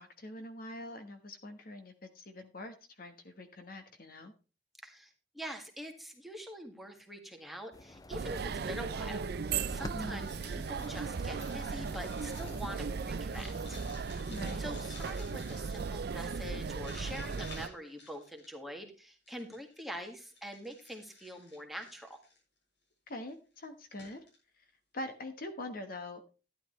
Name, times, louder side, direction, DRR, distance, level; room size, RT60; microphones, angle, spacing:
voice 1, 0.0-4.3 9.9-10.3 14.3-14.6 23.1-24.2 24.9-26.2, left 1 dB, 55° left, 7 dB, 1.2 m, -44 dB
voice 2, 4.8-9.3 9.7-13.8 14.6-22.2, equal, ahead, 2 dB, 1.8 m, -45 dB
sound 1, 7.7-14.0, left 2 dB, 20° left, 0.5 m, -50 dB
sound 2, 8.1-17.7, right 5 dB, 60° right, 0.5 m, -37 dB
sound 3, 10.1-18.7 19.3-22.4 23.1-23.3 23.6-23.7 23.9-24.3, left 3 dB, 85° left, 6.8 m, -54 dB
12.0 x 10.5 x 3.2 m, 0.33 s
head